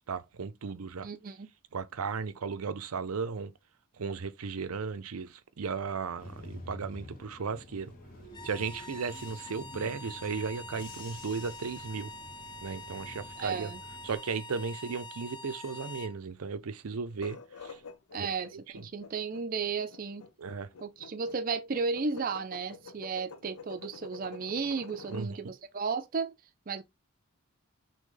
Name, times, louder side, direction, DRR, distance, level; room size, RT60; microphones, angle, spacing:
voice 1, 0.1-1.1 1.7-3.5 4.0-7.9 8.4-12.1 12.6-13.7 14.0-17.8 18.2-18.9 20.4-20.7 25.1-25.4, right 5 dB, 90° right, 0.6 m, -36 dB
voice 2, 1.0-1.5 13.4-13.8 18.1-20.2 20.8-26.3 26.7-26.8, right 5 dB, 40° right, 0.4 m, -34 dB
Bus / Engine, 6.2-14.2, left 1 dB, 40° left, 1.1 m, -49 dB
sound 1, 8.3-16.2, left 1 dB, 20° left, 0.4 m, -45 dB
sound 2, 17.1-25.3, left 5 dB, 80° left, 0.7 m, -48 dB
6.1 x 2.2 x 3.8 m
head